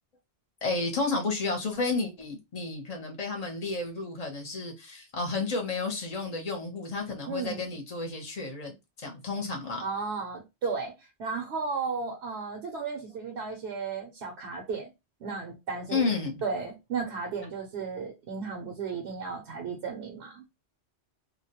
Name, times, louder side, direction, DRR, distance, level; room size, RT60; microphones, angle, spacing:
voice 1, 0.6-9.8 15.9-16.4, left 3 dB, 40° left, 0.8 m, -31 dB
voice 2, 7.3-7.6 9.8-10.9 11.2-14.9 15.2-16.1 16.4-20.4, right 5 dB, 80° right, 0.9 m, -34 dB
2.3 x 2.1 x 2.8 m
omnidirectional pair, 1.1 m